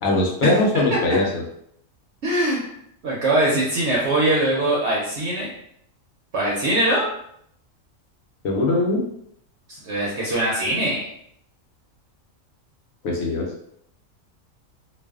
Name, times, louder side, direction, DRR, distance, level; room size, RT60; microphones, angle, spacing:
voice 1, 0.0-1.4 8.4-9.0 13.0-13.5, left 2 dB, 80° left, -1 dB, 1.0 m, -21 dB
voice 2, 2.2-2.7 3.0-5.5 6.3-7.0 9.7-11.1, right 1 dB, 65° right, -5 dB, 0.8 m, -22 dB
2.4 x 2.3 x 2.3 m, 0.71 s
omnidirectional pair, 1.4 m